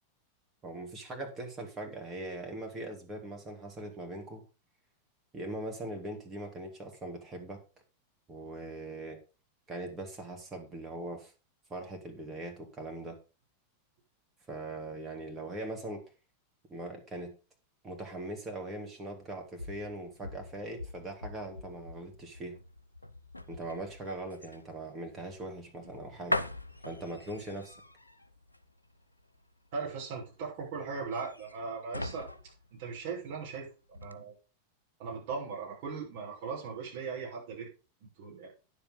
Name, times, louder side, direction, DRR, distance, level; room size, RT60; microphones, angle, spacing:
voice 1, 0.6-4.4 5.3-7.6 8.3-9.2 9.7-11.3 11.7-13.2 14.5-16.0 16.7-17.4 17.8-22.6 23.5-26.4 26.8-27.8, right 2 dB, 20° right, 3 dB, 2.9 m, -41 dB
sound 1, 19.2-33.6 33.9-34.1, left 1 dB, 85° left, 0.7 m, -42 dB
voice 2, 29.7-32.3 32.8-34.3 35.0-37.7 38.2-38.5, right 5 dB, 50° right, -2 dB, 6.2 m, -38 dB
10.0 x 7.5 x 5.2 m, 0.32 s
figure-of-eight pair, 90°, 0 cm